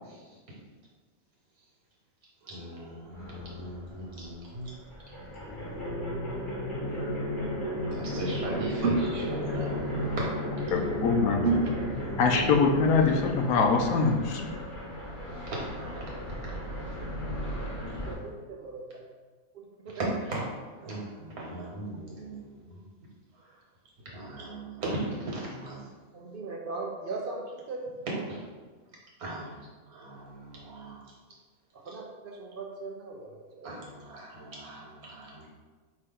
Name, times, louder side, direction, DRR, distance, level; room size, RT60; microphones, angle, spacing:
voice 1, 2.4-4.7 7.9-9.9 12.0-12.2 15.7-17.4 19.9-20.4 20.8-22.8 24.1-25.8 28.3-28.4 29.2-29.5 29.9-31.0 31.9-32.0 33.6-35.5, right 2 dB, 80° right, -4 dB, 1.7 m, -38 dB
sound 1, 3.1-4.3 4.7-18.1, left 1 dB, 40° left, 1.9 m, -34 dB
voice 2, 5.8-6.5 6.8-7.0 7.8-8.1 8.8-8.9 10.7-10.8 11.4-11.6 18.1-18.8 19.9-20.0 26.1-27.4 27.7-27.8 28.1-28.2 31.9-33.8, right 5 dB, 60° right, -1 dB, 0.6 m, -35 dB
voice 3, 10.7-11.4 12.2-14.5, left 4 dB, 80° left, 2 dB, 1.1 m, -23 dB
4.9 x 2.8 x 3.5 m, 1.4 s
omnidirectional pair, 1.5 m